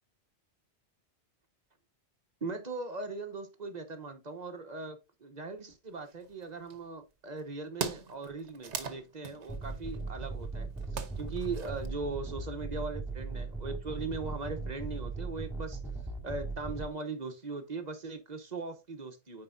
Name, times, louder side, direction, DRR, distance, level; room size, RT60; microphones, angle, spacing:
voice 1, 2.4-15.8 16.2-19.4, right 3 dB, 40° right, 1.0 m, -39 dB
sound 1, 6.1-6.8 7.4-7.5 7.7-11.8, right 6 dB, 80° right, 1.2 m, -41 dB
sound 2, 9.5-16.9, right 3 dB, ahead, 1.9 m, -38 dB
9.2 x 5.0 x 2.6 m
omnidirectional pair, 1.2 m